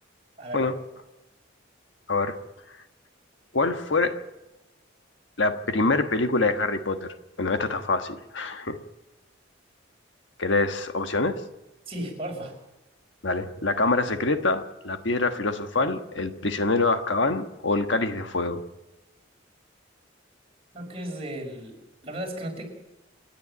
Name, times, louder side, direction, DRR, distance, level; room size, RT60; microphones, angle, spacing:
voice 1, 3.5-4.2 5.4-7.1 7.4-8.8 10.4-11.4 13.2-18.6, left 3 dB, 65° left, 7 dB, 1.4 m, -25 dB
voice 2, 11.9-12.6 20.7-21.8 22.0-22.6, right 1 dB, 30° right, 1 dB, 5.4 m, -35 dB
28.0 x 10.5 x 8.8 m, 1.0 s
head